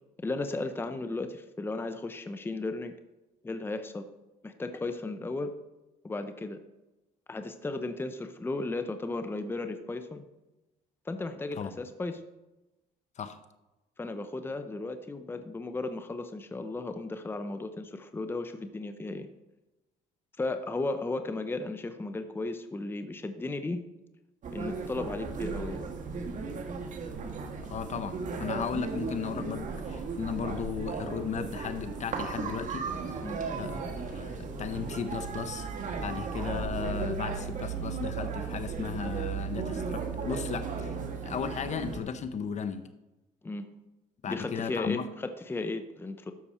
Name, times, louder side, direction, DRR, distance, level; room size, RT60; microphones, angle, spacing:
voice 1, 0.2-2.9 3.4-4.0 4.4-5.5 6.0-6.6 7.3-10.2 11.1-12.2 14.0-19.3 20.4-23.8 24.5-25.8 33.2-33.4 43.4-43.7 44.2-46.3, left 2 dB, 15° left, 0.7 m, -35 dB
sound 1, 24.4-42.0, right 5 dB, 50° right, 1.5 m, -35 dB
voice 2, 27.6-32.9 33.6-35.7 36.0-40.9 41.2-42.9 44.2-45.1, left 7 dB, 45° left, 0.8 m, -35 dB
12.0 x 7.0 x 4.3 m
cardioid pair, 110°, 17 cm